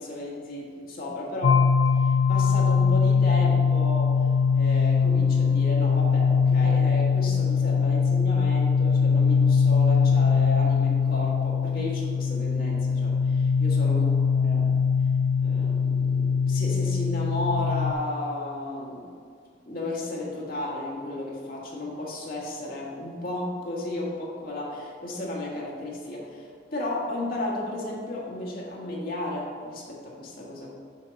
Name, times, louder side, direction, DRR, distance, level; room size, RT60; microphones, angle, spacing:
voice 1, 0.0-1.6 2.0-14.1 14.3-14.7 15.4-19.1 19.6-30.7, left 1 dB, 55° left, -3 dB, 1.6 m, -33 dB
sound 1, 1.4-17.9, left 5 dB, 85° left, 0.4 m, -22 dB
6.4 x 6.0 x 4.1 m, 2.1 s
head